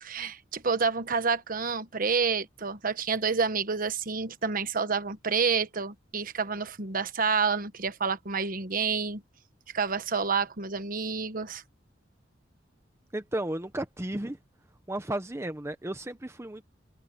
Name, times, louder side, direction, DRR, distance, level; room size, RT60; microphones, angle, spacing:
voice 1, 0.0-9.2 9.7-11.6, right 5 dB, 50° right, 1.2 m, -29 dB
voice 2, 13.1-14.4 14.9-16.6, right 1 dB, 15° right, 0.8 m, -33 dB
head